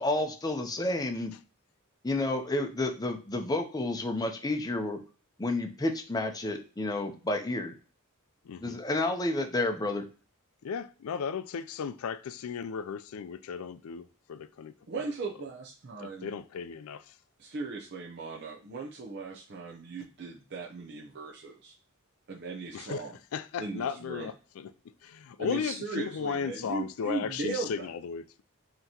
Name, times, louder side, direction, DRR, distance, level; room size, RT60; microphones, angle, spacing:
voice 1, 0.0-1.3 2.0-5.0 5.4-7.7 8.6-10.0, left 2 dB, 20° left, 0.6 m, -30 dB
voice 2, 8.4-8.8 10.6-14.7 16.0-17.1 22.7-24.7 25.0-28.4, left 6 dB, 70° left, 0.4 m, -36 dB
voice 3, 14.9-16.2 17.4-21.7 22.3-23.1 23.6-24.3 25.4-27.9, right 4 dB, 50° right, 0.6 m, -37 dB
5.6 x 2.9 x 2.8 m
head